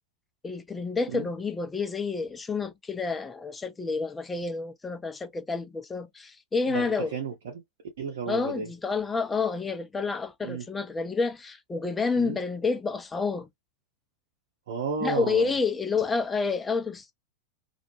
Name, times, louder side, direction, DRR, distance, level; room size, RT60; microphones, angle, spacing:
voice 1, 0.4-7.1 8.3-13.5 15.0-17.1, left 4 dB, 15° left, 0.5 m, -29 dB
voice 2, 6.7-7.6 8.0-8.7 10.4-10.6 12.1-12.4 14.7-15.6, right 5 dB, 60° right, 0.8 m, -33 dB
2.3 x 2.1 x 2.9 m
figure-of-eight pair, 90°, 0 cm